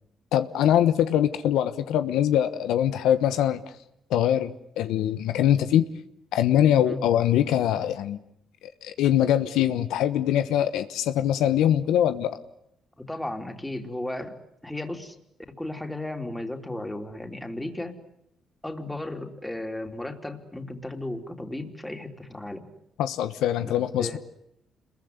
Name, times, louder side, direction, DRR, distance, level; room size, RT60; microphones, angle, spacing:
voice 1, 0.3-3.6 4.1-5.8 6.3-8.2 8.8-12.4 23.0-24.2, left 11 dB, 90° left, 11 dB, 1.2 m, -23 dB
voice 2, 13.0-14.4 14.6-15.2 15.6-18.0 18.6-22.6 23.6-24.2, left 1 dB, 10° left, 5 dB, 3.5 m, -35 dB
27.0 x 22.0 x 9.6 m, 0.78 s
cardioid pair, 90°, 0 cm